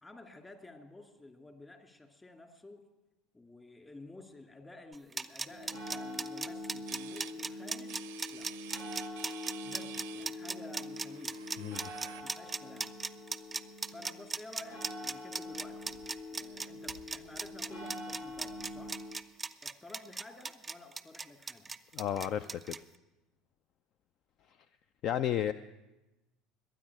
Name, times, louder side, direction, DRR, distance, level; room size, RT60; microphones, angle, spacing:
voice 1, 0.0-2.8 3.3-8.5 9.6-11.4 11.9-12.9 13.9-16.0 16.3-19.0 19.6-21.8, left 2 dB, 20° left, 4 dB, 2.5 m, -52 dB
sound 1, 4.9-22.8, right 4 dB, 20° right, 0.5 m, -38 dB
sound 2, 5.5-19.1, left 2 dB, 85° left, 5.8 m, -44 dB
sound 3, 6.9-12.2, right 17 dB, 75° right, 0.5 m, -52 dB
voice 2, 11.6-11.9 21.9-22.8 25.0-25.5, left 10 dB, 55° left, 14 dB, 0.4 m, -32 dB
22.0 x 9.2 x 4.8 m, 1.0 s
hypercardioid pair, 70°, 0 cm